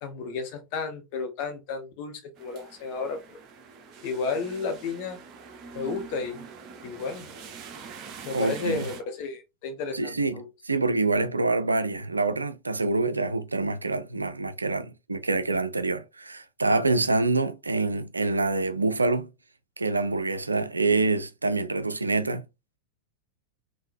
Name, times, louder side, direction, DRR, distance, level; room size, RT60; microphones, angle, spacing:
voice 1, 0.0-3.2 4.0-5.2 5.7-6.4 6.8-7.3 8.2-10.5, left 4 dB, 45° left, 1.0 m, -32 dB
sound 1, 2.4-9.0, right 6 dB, 35° right, 0.8 m, -44 dB
voice 2, 8.3-8.9 9.9-19.3 19.8-22.4, right 3 dB, 80° right, 0.4 m, -26 dB
3.8 x 2.6 x 2.7 m
figure-of-eight pair, 90°, 0 cm